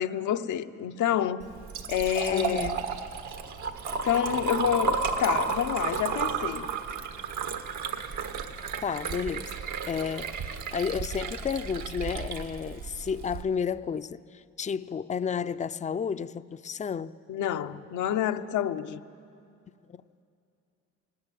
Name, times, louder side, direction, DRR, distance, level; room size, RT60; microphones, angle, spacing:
voice 1, 0.0-1.4 1.9-2.8 4.0-6.7 17.3-19.0, left 10 dB, 75° left, 0.8 m, -28 dB
Liquid, 1.4-13.4, right 5 dB, 70° right, 1.6 m, -32 dB
voice 2, 2.3-2.8 8.8-17.2 19.9-20.0, left 6 dB, 25° left, 0.5 m, -32 dB
19.5 x 19.0 x 9.2 m
cardioid pair, 90°, 30 cm